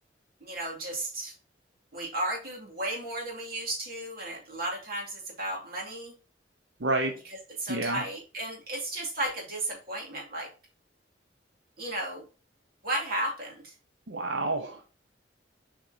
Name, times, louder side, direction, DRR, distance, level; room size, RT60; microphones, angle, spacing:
voice 1, 0.4-1.3 1.9-6.1 7.6-10.5 11.8-12.3 12.8-13.7, right 1 dB, 55° right, -2 dB, 2.6 m, -34 dB
voice 2, 6.8-7.1 7.7-8.0 14.1-14.9, right 2 dB, 85° right, 3 dB, 0.9 m, -29 dB
7.6 x 4.7 x 2.8 m, 0.36 s
head